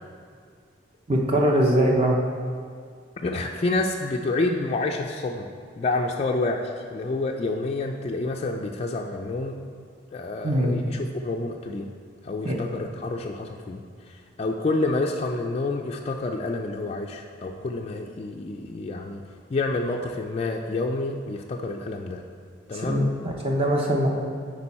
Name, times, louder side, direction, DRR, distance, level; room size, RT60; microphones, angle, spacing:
voice 1, 1.1-2.2 10.4-10.8 12.4-12.6 22.8-24.1, right 1 dB, 30° right, -1 dB, 0.6 m, -22 dB
voice 2, 3.2-5.5 5.8-9.6 10.1-11.9 12.2-19.2 19.5-22.2 22.7-23.1, left 2 dB, 30° left, 1 dB, 0.3 m, -28 dB
8.9 x 4.6 x 4.2 m, 2.1 s
head